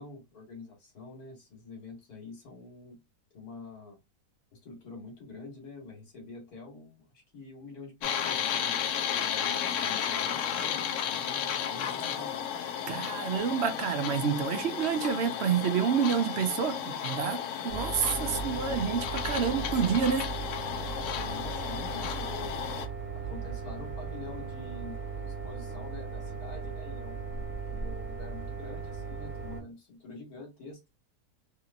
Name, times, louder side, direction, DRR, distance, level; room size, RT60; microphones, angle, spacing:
voice 1, 0.0-3.0 3.3-4.0 4.5-12.4 18.0-18.8 21.1-22.7 23.1-30.8, left 3 dB, 85° left, 2.0 m, -46 dB
sound 1, 8.0-22.9, left 8 dB, 65° left, 0.8 m, -33 dB
voice 2, 12.9-20.3, right 7 dB, 65° right, 0.6 m, -28 dB
sound 2, 17.7-29.6, right 5 dB, 30° left, 1.5 m, -38 dB
3.5 x 2.8 x 2.5 m
omnidirectional pair, 1.6 m